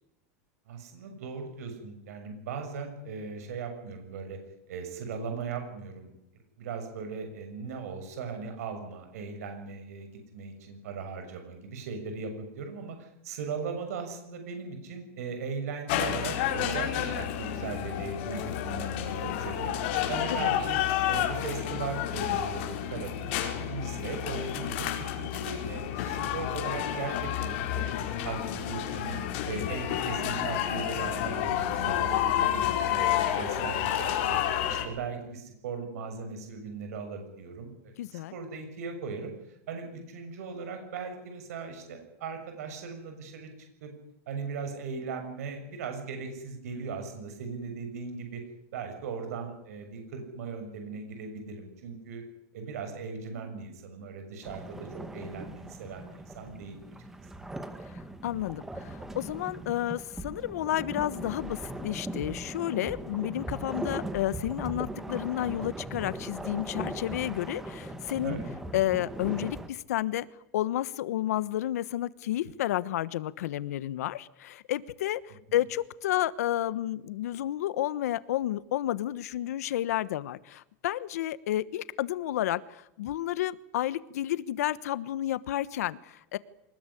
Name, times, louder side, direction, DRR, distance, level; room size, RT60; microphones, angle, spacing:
voice 1, 0.7-4.4 4.7-6.1 6.6-19.7 20.1-20.8 21.1-27.9 28.2-29.2 29.4-34.4 34.7-43.5 43.8-43.9 44.3-48.4 48.7-52.2 52.5-56.7 68.2-68.4, right 5 dB, 75° right, 6 dB, 6.7 m, -38 dB
sound 1, 15.9-34.8, left 11 dB, 50° left, 4.7 m, -30 dB
voice 2, 38.0-38.3 58.2-68.4 68.7-70.2 70.5-86.4, left 13 dB, 85° left, 16 dB, 1.2 m, -31 dB
sound 2, 54.4-69.7, right 1 dB, 5° right, 1.2 m, -39 dB
24.0 x 20.5 x 10.0 m, 0.82 s
supercardioid pair, 180°, 8 cm